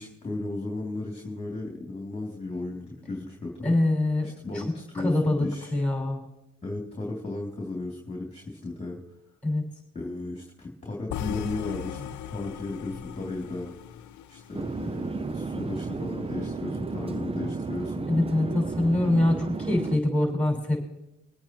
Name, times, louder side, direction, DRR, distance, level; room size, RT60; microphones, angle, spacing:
voice 1, 0.0-3.7 4.2-5.7 6.6-9.0 9.9-13.7 14.3-18.1, left 2 dB, 20° left, -1 dB, 2.8 m, -35 dB
voice 2, 3.6-4.3 4.5-4.6 4.9-5.5 5.7-6.2 9.4-9.6 18.1-20.8, left 1 dB, 5° left, -1 dB, 5.9 m, -24 dB
sound 1, 11.1-15.2, left 11 dB, 70° left, 0.8 m, -37 dB
Chatter / Fixed-wing aircraft airplane, 14.5-20.0, right 4 dB, 20° right, 0.6 m, -33 dB
25.0 x 8.7 x 3.1 m, 0.92 s
cardioid pair, 90°, 30 cm